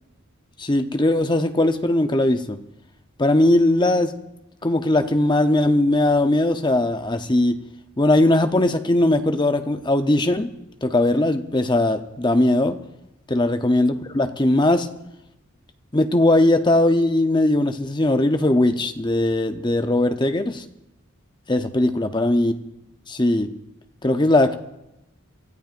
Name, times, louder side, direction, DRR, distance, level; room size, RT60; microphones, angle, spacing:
voice 1, 0.6-2.6 3.2-4.1 4.6-7.6 8.0-10.5 10.8-12.8 13.3-14.9 15.9-20.6 21.5-22.5 23.1-23.5 24.0-24.5, left 1 dB, 20° left, 8 dB, 0.7 m, -19 dB
27.0 x 13.5 x 2.6 m, 0.88 s
head